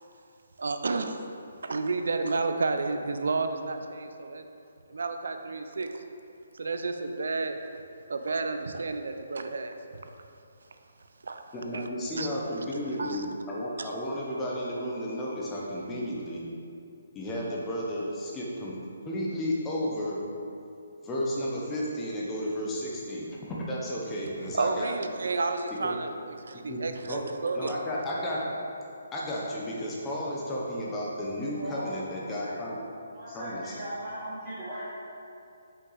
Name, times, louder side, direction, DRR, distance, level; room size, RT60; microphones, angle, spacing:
voice 1, 0.6-1.2 1.6-4.4 4.9-6.0 6.5-7.6 8.1-9.8 10.0-10.1 11.2-11.4 11.7-11.9 12.2-12.3 13.0-13.3 13.8-13.9 24.4-26.1 26.4-27.8, right 3 dB, 70° right, 7 dB, 0.6 m, -31 dB
voice 2, 11.5-16.4 17.1-18.7 19.0-20.2 21.0-24.9 25.8-25.9 26.7-27.2 27.5-28.6 29.1-32.8 33.3-33.8, equal, 10° left, -5 dB, 0.7 m, -33 dB
voice 3, 31.4-32.6 33.1-34.9, equal, 10° right, -16 dB, 1.5 m, -38 dB
5.9 x 5.7 x 4.0 m, 2.6 s
hypercardioid pair, 175°, 0 cm